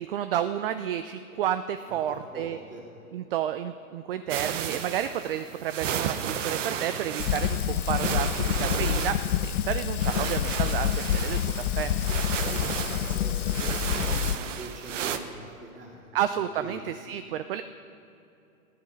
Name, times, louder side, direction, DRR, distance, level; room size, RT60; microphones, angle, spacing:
voice 1, 0.0-2.6 3.1-11.4 11.8-11.9 16.1-17.6, right 10 dB, 45° right, 10 dB, 0.4 m, -31 dB
voice 2, 1.9-2.8 11.7-16.3 16.6-16.8, right 1 dB, 15° right, -4 dB, 3.1 m, -43 dB
sound 1, 4.3-15.2, right 8 dB, 60° right, 1.0 m, -33 dB
Fire, 7.2-14.3, left 10 dB, 80° left, 0.6 m, -27 dB
15.5 x 10.5 x 5.2 m, 2.7 s
hypercardioid pair, 130°, 44 cm